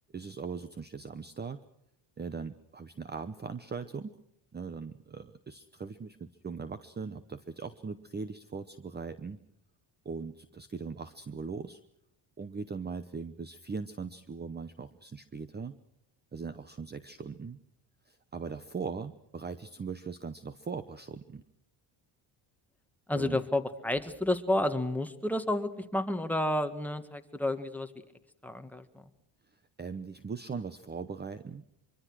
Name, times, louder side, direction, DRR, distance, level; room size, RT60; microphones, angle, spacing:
voice 1, 0.1-1.6 2.2-4.2 4.5-9.4 10.0-11.8 12.4-15.8 16.3-17.6 18.1-21.4 23.1-23.4 29.8-31.6, right 5 dB, 20° right, 13 dB, 0.9 m, -40 dB
voice 2, 23.1-27.9 28.4-29.0, left 1 dB, 5° left, 6 dB, 1.8 m, -31 dB
24.5 x 24.5 x 6.2 m, 0.78 s
cardioid pair, 130°, 49 cm